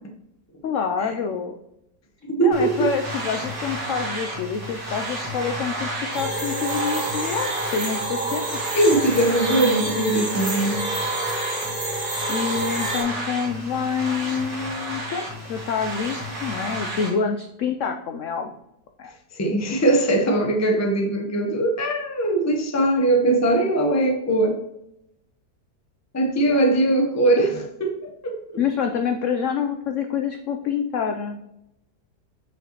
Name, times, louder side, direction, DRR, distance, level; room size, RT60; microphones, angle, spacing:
voice 1, 0.6-1.5 2.4-8.6 12.3-16.2 16.4-18.5 19.0-19.1 26.5-26.6 28.6-31.4, left 6 dB, 80° left, 0.7 m, -27 dB
voice 2, 2.3-2.9 8.7-10.8 19.4-24.6 26.1-28.6, right 2 dB, 20° left, 0.4 m, -21 dB
sound 1, 2.5-17.1, right 1 dB, 75° right, 2.6 m, -32 dB
sound 2, 6.1-13.0, right 2 dB, 55° right, 2.8 m, -28 dB
8.4 x 5.1 x 2.9 m
omnidirectional pair, 1.9 m